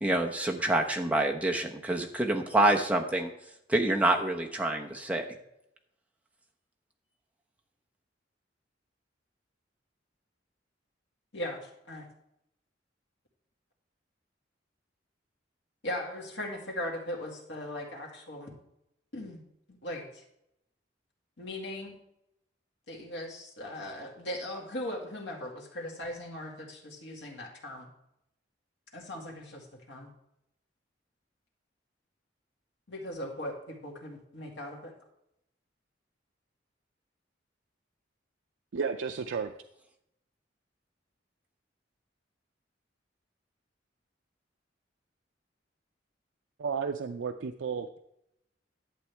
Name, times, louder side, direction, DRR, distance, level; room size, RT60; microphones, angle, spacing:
voice 1, 0.0-3.3 3.7-5.3, right 1 dB, 10° right, 1 dB, 0.9 m, -27 dB
voice 2, 11.3-12.1 15.8-18.5 19.1-19.4 19.8-20.2 21.4-22.0 22.9-27.9 28.9-30.1 32.9-34.9, left 1 dB, 80° left, 0 dB, 2.1 m, -39 dB
voice 3, 38.7-39.5 46.6-48.0, right 5 dB, 85° right, 6 dB, 0.5 m, -33 dB
11.5 x 7.7 x 3.4 m, 0.79 s
head